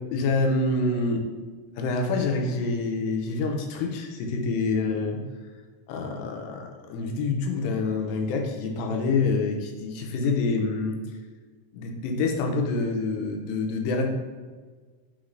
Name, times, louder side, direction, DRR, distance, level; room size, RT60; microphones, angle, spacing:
voice 1, 0.1-1.2 1.8-5.2 5.9-11.0 11.7-14.1, left 3 dB, 90° left, 2 dB, 2.4 m, -26 dB
5.7 x 2.5 x 3.1 m, 1.4 s
omnidirectional pair, 4.0 m